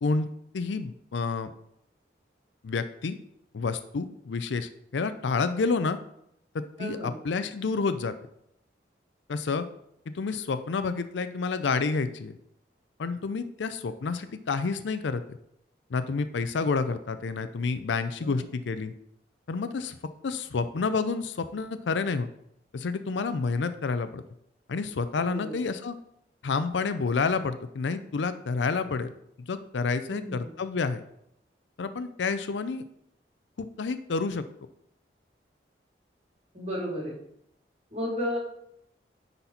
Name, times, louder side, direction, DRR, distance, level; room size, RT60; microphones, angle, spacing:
voice 1, 0.5-1.5 2.6-3.2 3.5-6.0 6.5-8.1 9.3-9.7 10.1-12.4 13.0-15.2 15.9-18.9 19.5-20.0 20.2-22.3 22.7-24.2 24.7-26.0 26.4-29.1 29.4-31.0 31.8-32.8 33.6-34.4, left 4 dB, 90° left, 11 dB, 0.5 m, -29 dB
voice 2, 6.8-7.2 18.2-18.4 25.2-25.6 30.0-30.5 36.5-37.2 37.9-38.4, equal, 35° right, -3 dB, 2.2 m, -33 dB
9.9 x 4.1 x 4.2 m, 0.74 s
head